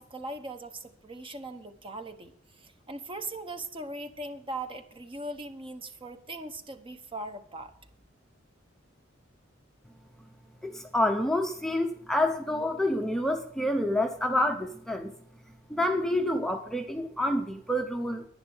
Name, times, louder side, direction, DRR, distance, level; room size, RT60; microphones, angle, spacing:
voice 1, 0.0-2.3 2.6-7.7, right 2 dB, 25° right, 8 dB, 1.1 m, -39 dB
voice 2, 10.6-15.1 15.7-18.2, left 1 dB, ahead, 5 dB, 0.8 m, -28 dB
10.5 x 10.5 x 5.5 m, 0.66 s
head